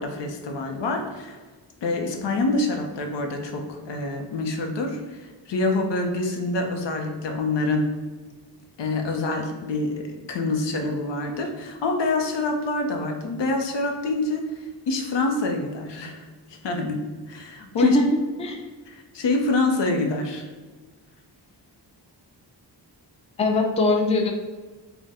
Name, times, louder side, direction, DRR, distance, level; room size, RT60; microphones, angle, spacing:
voice 1, 0.0-1.4 1.8-7.9 8.8-17.0 17.3-18.0 18.9-20.5, left 2 dB, 80° left, 3 dB, 0.7 m, -26 dB
voice 2, 23.4-24.3, left 2 dB, 15° left, 2 dB, 0.4 m, -21 dB
3.6 x 2.2 x 4.0 m, 1.3 s
wide cardioid pair, 130°, 42 cm